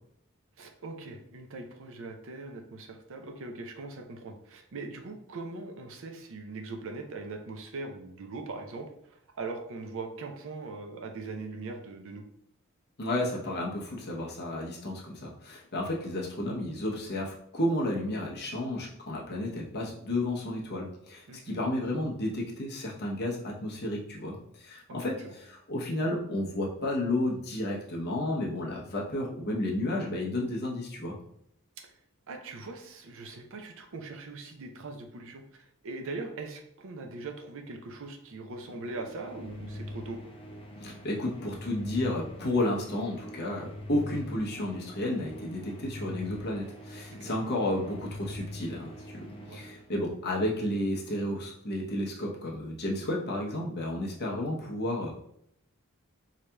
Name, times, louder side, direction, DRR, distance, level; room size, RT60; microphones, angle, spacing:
voice 1, 0.6-12.2 21.3-21.7 24.9-25.4 31.8-31.9 32.3-40.2 47.1-47.3 49.5-49.6, right 3 dB, 65° right, 3 dB, 0.6 m, -41 dB
voice 2, 13.0-31.2 40.8-55.1, left 1 dB, 50° left, -2 dB, 0.9 m, -32 dB
sound 1, 38.5-50.4, left 1 dB, 25° left, 0.6 m, -43 dB
4.8 x 2.8 x 2.3 m, 0.73 s
head